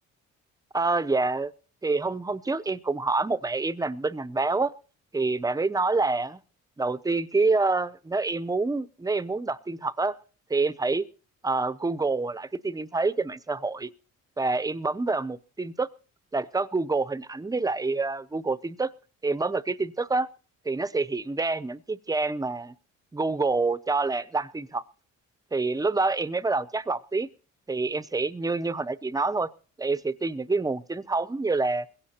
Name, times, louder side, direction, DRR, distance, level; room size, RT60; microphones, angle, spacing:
voice 1, 0.7-1.5 1.8-4.7 5.1-6.4 6.8-10.2 10.5-11.1 11.4-13.9 14.4-15.9 16.3-18.9 19.2-20.3 20.6-22.7 23.1-24.8 25.5-27.3 27.7-29.5 29.8-31.9, right 3 dB, 10° right, 0.6 m, -27 dB
21.5 x 16.5 x 2.8 m
cardioid pair, 90°, 30 cm